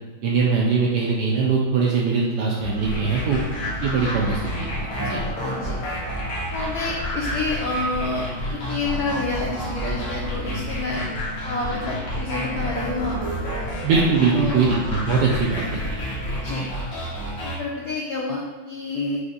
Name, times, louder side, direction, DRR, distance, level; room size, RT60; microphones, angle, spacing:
voice 1, 0.2-3.4 3.8-5.2 13.8-15.8, right 4 dB, 75° right, -2 dB, 1.0 m, -21 dB
sound 1, 2.5-16.6, right 1 dB, 45° left, 0.6 m, -37 dB
sound 2, 2.8-17.6, left 1 dB, 60° left, 1.7 m, -30 dB
voice 2, 5.4-5.8 6.5-11.1 11.4-13.2 14.3-14.6 16.4-16.7 17.4-19.2, left 3 dB, 85° left, -2 dB, 0.8 m, -28 dB
4.9 x 2.6 x 3.8 m, 1.3 s
omnidirectional pair, 2.3 m